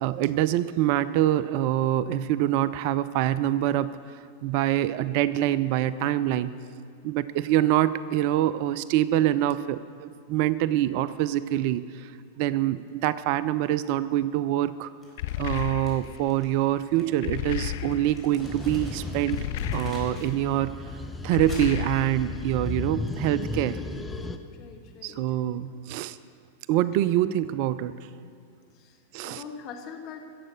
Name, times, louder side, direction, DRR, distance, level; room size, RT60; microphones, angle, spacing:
voice 1, 0.0-3.9 4.4-6.5 7.0-12.1 12.4-14.9 15.4-19.4 19.7-20.7 21.2-23.8 25.0-26.2 26.7-27.9 29.1-29.4, right 13 dB, 50° right, 16 dB, 0.4 m, -25 dB
Crumpling crinkling, 15.0-20.4 20.7-22.7, left 1 dB, 10° right, 4.2 m, -46 dB
sound 1, 15.2-16.3 17.2-18.3 19.3-20.4 21.3-22.4, left 13 dB, 60° left, 0.4 m, -33 dB
sound 2, 18.4-24.4, left 3 dB, 10° left, 0.9 m, -35 dB
voice 2, 24.5-25.4 25.9-26.1 28.7-30.2, left 6 dB, 45° left, 3 dB, 1.8 m, -43 dB
16.5 x 7.6 x 6.6 m, 2.2 s
figure-of-eight pair, 95°, 0 cm